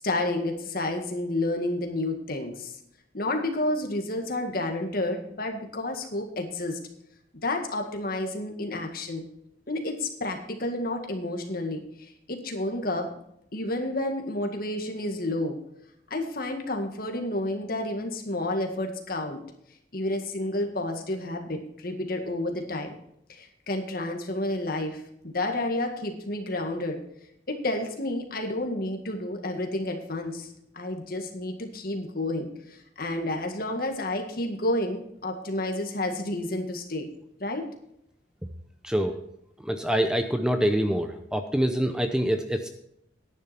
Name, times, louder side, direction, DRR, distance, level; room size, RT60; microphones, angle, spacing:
voice 1, 0.0-2.8 3.1-6.8 7.4-9.3 9.7-13.1 13.5-15.6 16.1-19.4 19.9-23.0 23.3-27.0 27.5-37.1 37.4-37.7, left 1 dB, 50° left, 4 dB, 1.9 m, -30 dB
voice 2, 38.8-39.2 39.6-42.7, equal, 5° right, 6 dB, 0.6 m, -25 dB
10.5 x 10.0 x 4.3 m, 0.76 s
head